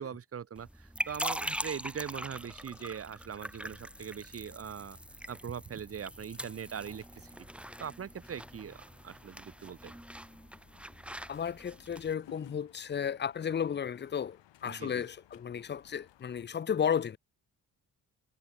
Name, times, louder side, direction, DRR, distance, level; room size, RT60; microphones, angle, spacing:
voice 1, 0.0-5.0 5.3-7.3 7.8-9.9 14.7-15.0, right 8 dB, 35° right, 0.7 m, -41 dB
sound 1, 0.6-12.1, equal, 5° right, 1.1 m, -42 dB
sound 2, 1.4-16.5, left 13 dB, 85° left, 6.2 m, -62 dB
voice 2, 11.3-17.2, left 8 dB, 25° left, 0.5 m, -33 dB
supercardioid pair, 60°, 42 cm